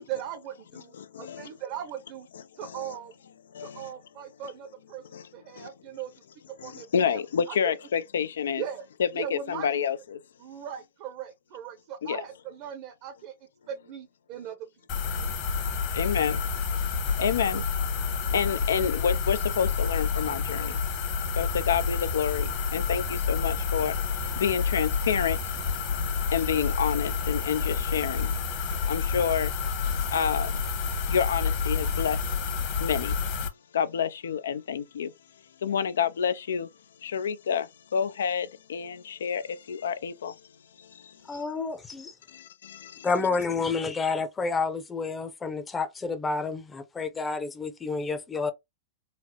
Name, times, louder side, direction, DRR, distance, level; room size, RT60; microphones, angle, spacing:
voice 1, 0.0-2.3 2.6-3.2 3.6-6.1 6.6-7.2 7.5-7.8 8.6-8.9 9.1-9.8 10.4-13.3 13.7-14.6 15.0-15.1, right 9 dB, 50° right, 0.7 m, -39 dB
voice 2, 0.9-1.5 2.6-2.9 3.5-3.9 5.1-5.3 5.6-5.7 6.6-8.6 9.0-10.2 12.0-12.2 15.9-16.4 17.2-20.8 21.4-25.5 25.9-26.0 26.3-28.3 28.8-29.5 30.1-30.5 31.1-32.2 32.8-33.2 33.7-35.1 35.6-36.7 37.0-40.4 40.8-41.1 42.3-43.1, left 7 dB, 85° left, 0.4 m, -29 dB
sound 1, 14.9-33.5, left 5 dB, 50° left, 1.2 m, -29 dB
voice 3, 41.3-42.1 43.0-48.5, left 4 dB, 15° left, 0.6 m, -29 dB
4.0 x 2.0 x 2.9 m
hypercardioid pair, 115°, 0 cm